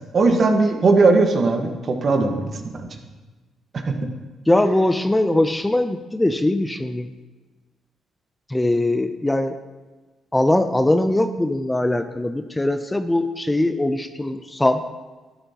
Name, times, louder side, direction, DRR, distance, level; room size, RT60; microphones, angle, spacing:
voice 1, 0.1-2.5 2.8-2.9 3.8-3.9, right 3 dB, 45° right, 4 dB, 1.3 m, -18 dB
voice 2, 4.5-7.1 8.5-9.6 10.3-14.8, left 1 dB, 10° left, 9 dB, 0.5 m, -21 dB
12.0 x 10.5 x 2.9 m, 1.3 s
cardioid pair, 90°, 0 cm